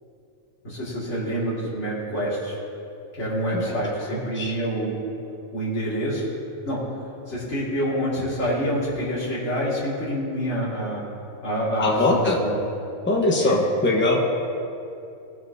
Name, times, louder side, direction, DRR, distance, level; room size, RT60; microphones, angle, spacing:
voice 1, 0.6-2.5 3.2-5.0 5.5-6.2 6.6-6.8 7.3-11.0 11.4-12.6 13.4-13.6, equal, 60° left, -10 dB, 2.6 m, -27 dB
voice 2, 4.1-4.5 11.8-12.4 13.1-14.4, left 2 dB, 10° left, -1 dB, 1.0 m, -22 dB
18.0 x 7.5 x 2.8 m, 2.6 s
omnidirectional pair, 1.4 m